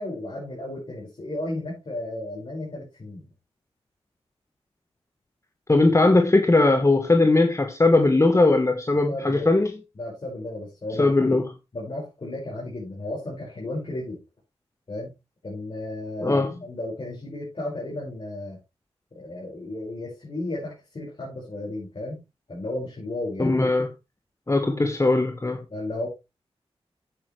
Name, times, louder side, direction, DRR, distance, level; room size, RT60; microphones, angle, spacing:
voice 1, 0.0-3.3 9.1-9.5 10.0-11.2 11.7-14.2 14.9-15.1 15.4-18.6 19.1-22.2 22.5-23.6 25.7-26.1, left 1 dB, 50° left, 5.5 m, -34 dB
voice 2, 5.7-9.8 11.0-11.4 16.2-16.5 23.4-23.9 24.5-25.6, left 2 dB, 25° left, 1.3 m, -19 dB
9.0 x 8.4 x 3.3 m
cardioid pair, 45°, 11 cm